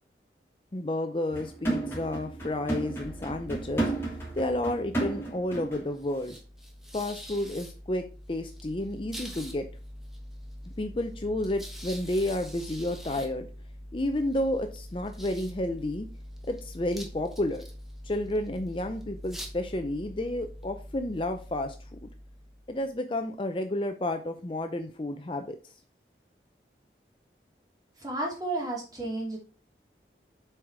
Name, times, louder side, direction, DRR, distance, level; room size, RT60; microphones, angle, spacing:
voice 1, 0.7-3.9 4.4-6.3 6.9-8.0 8.3-9.7 10.8-13.5 13.9-16.1 16.5-17.7 18.0-22.1 22.7-25.7, left 1 dB, 30° left, 7 dB, 0.5 m, -31 dB
sound 1, 1.3-5.9 6.2-6.4, right 2 dB, 15° left, 2.8 m, -33 dB
sound 2, 3.0-22.9, equal, ahead, 1.2 m, -44 dB
voice 2, 28.0-29.4, right 2 dB, 20° right, -1 dB, 2.7 m, -32 dB
7.7 x 4.7 x 4.8 m, 0.36 s
head